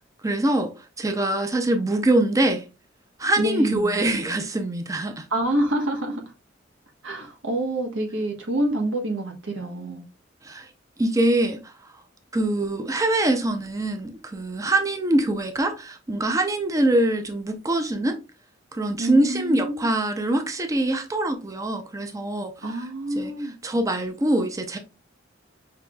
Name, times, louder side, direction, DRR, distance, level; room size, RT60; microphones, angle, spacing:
voice 1, 0.2-2.6 3.2-5.3 10.4-10.7 11.0-11.7 12.3-18.2 18.7-22.9 23.2-24.8, right 1 dB, 15° right, 0.5 m, -24 dB
voice 2, 3.4-4.0 5.3-6.2 7.0-10.0 19.0-19.9 22.6-23.5, right 1 dB, 85° right, 1.2 m, -27 dB
5.8 x 3.0 x 2.3 m
head